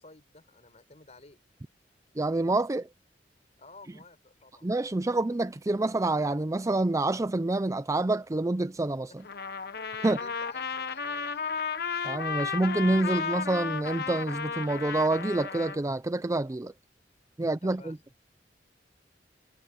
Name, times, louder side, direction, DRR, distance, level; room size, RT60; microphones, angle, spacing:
voice 1, 0.0-1.4 3.6-4.7 10.0-11.5 17.4-18.1, left 3 dB, 40° left, 5.3 m, -53 dB
voice 2, 2.2-2.9 4.6-9.2 10.0-10.2 12.0-16.7 17.4-18.0, right 2 dB, 20° right, 0.5 m, -27 dB
Trumpet, 9.2-15.8, left 5 dB, 65° left, 1.4 m, -34 dB
head